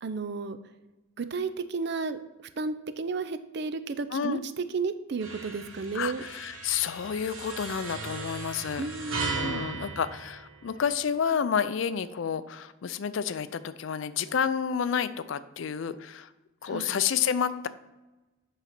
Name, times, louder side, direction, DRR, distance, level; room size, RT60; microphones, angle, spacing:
voice 1, 0.0-0.6 1.2-2.2 2.6-6.2 8.8-9.6 16.7-17.0, right 4 dB, 50° right, 11 dB, 0.5 m, -32 dB
voice 2, 4.1-4.4 5.9-8.8 9.3-16.3 16.6-17.7, left 7 dB, 60° left, 14 dB, 0.4 m, -30 dB
sound 1, 5.2-11.0, right 4 dB, 85° right, 1.4 m, -37 dB
8.2 x 4.0 x 5.9 m, 1.1 s
head